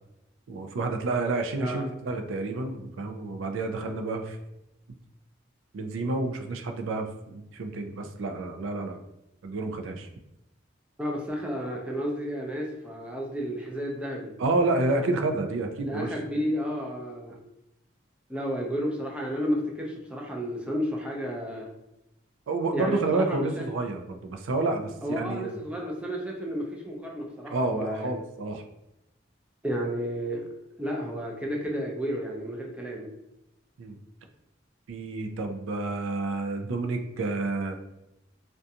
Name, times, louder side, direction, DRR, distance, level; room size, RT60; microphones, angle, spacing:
voice 1, 0.5-4.4 5.7-9.0 9.4-10.1 14.4-16.1 22.5-25.6 27.5-28.6 33.8-34.0 34.9-37.8, right 2 dB, 85° right, 5 dB, 0.4 m, -29 dB
voice 2, 1.5-1.9 11.0-14.3 15.9-17.4 18.3-21.7 22.7-23.6 25.0-28.1 29.6-30.4 30.8-33.1, equal, 5° right, -2 dB, 0.4 m, -32 dB
2.5 x 2.2 x 2.7 m, 0.88 s
head